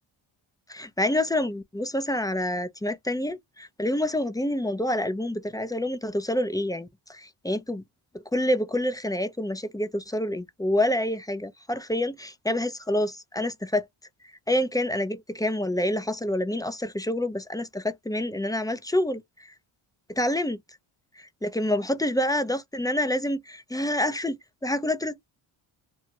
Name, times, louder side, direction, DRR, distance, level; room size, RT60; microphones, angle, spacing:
voice 1, 0.7-7.8 8.3-13.9 14.5-19.5 20.1-20.6 21.2-24.4 24.6-25.2, left 1 dB, 10° left, 0.4 m, -27 dB
2.9 x 2.3 x 2.7 m
cardioid pair, 65°, 49 cm